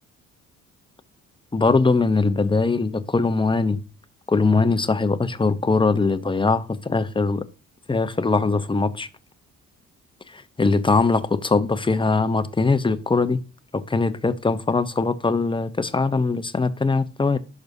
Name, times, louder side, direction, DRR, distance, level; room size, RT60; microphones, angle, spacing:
voice 1, 1.5-3.8 4.3-7.4 7.9-9.1 10.3-13.4 13.7-17.4, left 3 dB, 15° left, 0.8 m, -21 dB
10.5 x 6.2 x 2.7 m
cardioid pair, 90°, 30 cm